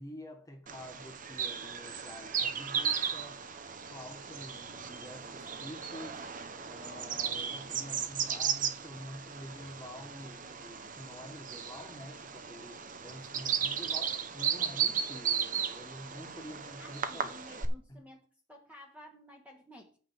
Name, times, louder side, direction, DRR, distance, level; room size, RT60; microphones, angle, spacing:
voice 1, 0.0-3.5 3.9-17.3 17.9-18.0, equal, 15° left, 1.6 m, -48 dB
Bird vocalization bird call bird song, 0.7-17.7, right 7 dB, 40° right, 0.8 m, -36 dB
voice 2, 16.8-20.0, left 1 dB, 5° right, 1.3 m, -53 dB
8.2 x 5.6 x 7.6 m
head